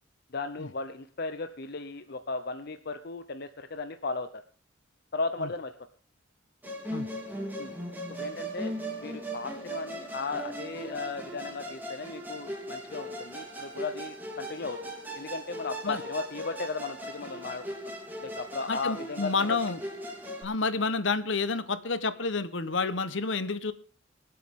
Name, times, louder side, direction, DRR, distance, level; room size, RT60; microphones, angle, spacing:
voice 1, 0.3-4.4 5.1-5.7 7.6-7.7 8.2-8.7 9.0-18.0 18.2-19.6, left 3 dB, 55° left, 9 dB, 0.7 m, -36 dB
Musical instrument, 6.6-20.4, equal, 10° right, 3.4 m, -38 dB
voice 2, 18.7-19.8 20.4-23.7, left 4 dB, 70° left, 13 dB, 1.1 m, -29 dB
25.0 x 8.4 x 3.7 m, 0.39 s
head